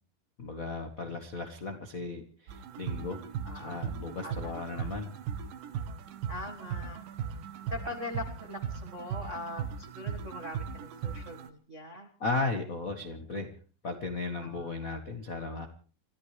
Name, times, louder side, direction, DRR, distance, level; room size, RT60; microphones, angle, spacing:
voice 1, 0.4-3.2 3.6-5.1 12.2-13.5 13.8-15.7, left 3 dB, 75° left, 6 dB, 0.7 m, -35 dB
sound 1, 2.5-11.5, right 7 dB, 70° right, 2.9 m, -38 dB
voice 2, 3.4-4.0 4.2-4.9 6.3-7.4 7.7-12.1 14.4-14.9, left 1 dB, 50° right, 2 dB, 0.8 m, -42 dB
30.0 x 14.0 x 3.3 m, 0.40 s
omnidirectional pair, 4.2 m